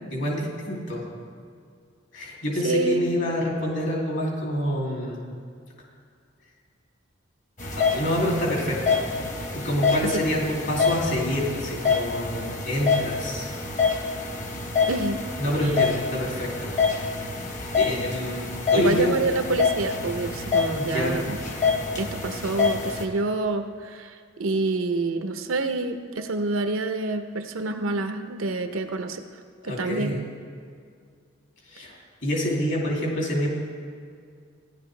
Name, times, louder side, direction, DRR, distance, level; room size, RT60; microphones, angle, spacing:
voice 1, 0.1-1.1 2.1-5.2 7.7-9.0 9.5-13.5 15.4-16.7 17.0-17.2 17.7-19.1 20.7-21.2 29.6-30.2 31.7-31.9 32.2-33.5, equal, 65° left, -3 dB, 2.7 m, -27 dB
voice 2, 2.6-3.0 10.1-10.2 14.9-15.2 15.6-15.7 18.7-21.4 22.0-29.2 29.6-30.3, right 2 dB, 85° right, 7 dB, 0.7 m, -27 dB
sound 1, 7.6-23.0, left 5 dB, 40° left, 1.0 m, -27 dB
15.5 x 11.0 x 3.3 m, 2.2 s
head